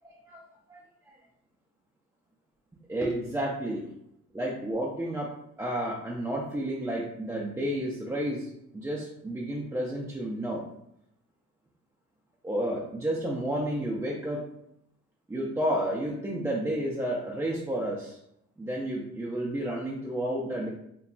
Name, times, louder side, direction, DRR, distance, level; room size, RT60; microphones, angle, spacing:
voice 1, 0.0-0.4 0.7-0.8 2.9-3.9 4.3-5.3 5.6-10.6 12.4-14.4 15.3-18.2 18.6-20.7, right 1 dB, 10° right, -4 dB, 0.4 m, -31 dB
2.2 x 2.1 x 3.7 m, 0.77 s
cardioid pair, 90°, 30 cm